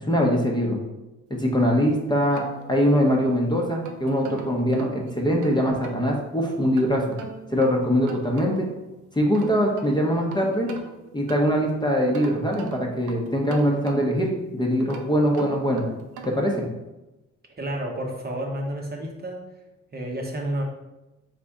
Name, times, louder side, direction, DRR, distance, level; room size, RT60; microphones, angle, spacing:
voice 1, 0.1-0.8 1.3-7.0 7.5-8.7 9.1-10.7 11.1-15.8 16.2-16.6, equal, 15° left, 0 dB, 0.8 m, -22 dB
sound 1, 1.8-3.2 3.6-6.1 6.8-8.8 9.1-11.7 12.1-14.3 14.8-16.6, right 5 dB, 85° right, 0.6 m, -41 dB
voice 2, 17.6-19.4 19.9-20.6, right 1 dB, 30° right, 0 dB, 0.8 m, -30 dB
4.1 x 3.3 x 3.6 m, 1.0 s
cardioid pair, 90°, 30 cm